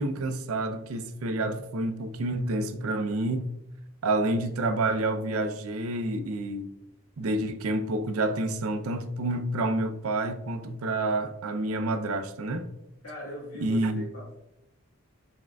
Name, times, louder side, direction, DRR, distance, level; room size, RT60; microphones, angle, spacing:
voice 1, 0.0-3.5 4.0-6.7 7.2-12.7 13.6-14.1, right 2 dB, 85° right, 0.5 m, -28 dB
voice 2, 13.0-14.4, right 1 dB, 85° left, 1.6 m, -41 dB
6.3 x 3.6 x 2.3 m
head